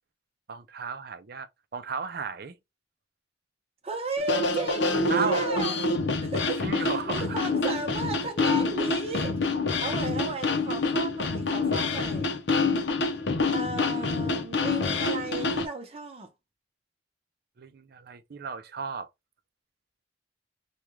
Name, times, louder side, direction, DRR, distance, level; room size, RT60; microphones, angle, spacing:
voice 1, 0.5-2.5 5.1-5.5 6.6-7.5 17.6-19.1, right 5 dB, 60° right, 0.5 m, -34 dB
voice 2, 3.8-5.8 6.2-9.4 9.8-12.3 13.5-16.3, right 3 dB, 35° right, 0.8 m, -34 dB
sound 1, 4.2-15.7, left 3 dB, 70° left, 0.6 m, -27 dB
3.5 x 2.3 x 2.9 m
head